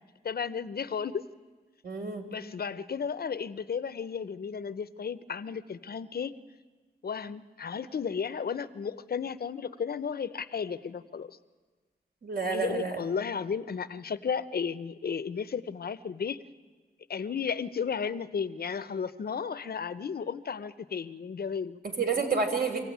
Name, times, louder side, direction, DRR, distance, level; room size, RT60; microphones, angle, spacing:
voice 1, 0.2-1.2 2.3-6.3 7.0-11.4 12.5-16.4 17.1-21.8, left 6 dB, 60° left, 13 dB, 0.8 m, -34 dB
voice 2, 1.8-2.3 12.2-13.0 22.0-22.8, right 4 dB, 60° right, 4 dB, 3.8 m, -29 dB
25.5 x 16.0 x 9.4 m, 1.4 s
wide cardioid pair, 90°, 18 cm